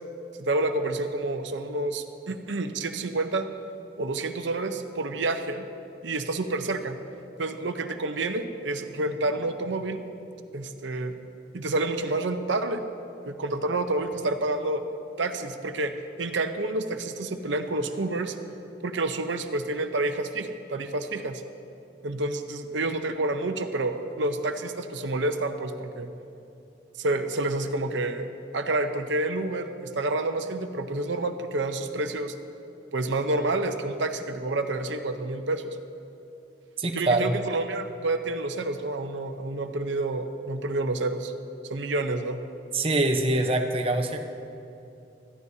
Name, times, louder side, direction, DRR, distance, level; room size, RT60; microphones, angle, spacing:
voice 1, 0.4-3.5 4.0-5.6 6.0-7.0 7.4-10.0 10.5-11.2 11.5-12.8 13.2-14.8 15.2-15.9 16.2-18.3 18.8-21.4 22.0-26.1 27.0-28.3 28.5-32.3 32.9-35.8 37.0-41.3 41.7-42.4, right 2 dB, 80° right, 7 dB, 0.8 m, -29 dB
voice 2, 36.8-37.3 42.7-44.2, right 2 dB, 30° right, 4 dB, 0.8 m, -24 dB
20.5 x 13.5 x 2.8 m, 2.8 s
head